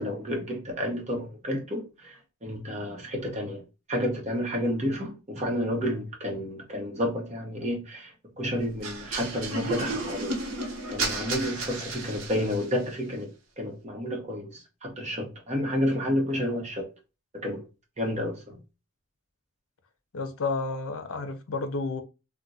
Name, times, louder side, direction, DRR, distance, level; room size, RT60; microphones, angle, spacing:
voice 1, 0.0-3.6 3.9-13.3 13.6-16.9 17.3-17.6 18.0-18.6, equal, 35° right, 0.8 m, -30 dB
sound 1, 8.8-12.8, right 3 dB, 85° right, 0.8 m, -33 dB
voice 2, 20.1-22.0, left 3 dB, 75° left, 0.5 m, -31 dB
2.5 x 2.1 x 4.0 m
head